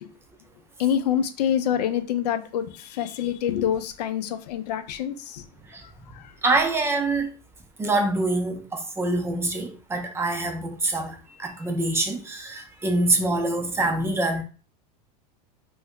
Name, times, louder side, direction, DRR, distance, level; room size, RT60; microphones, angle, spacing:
voice 1, 0.8-5.4 5.8-6.3, left 9 dB, 80° left, 0.5 m, -26 dB
voice 2, 6.4-7.3 7.8-14.4, right 2 dB, 10° right, 0.4 m, -25 dB
2.6 x 2.2 x 3.6 m
supercardioid pair, 130°, 20 cm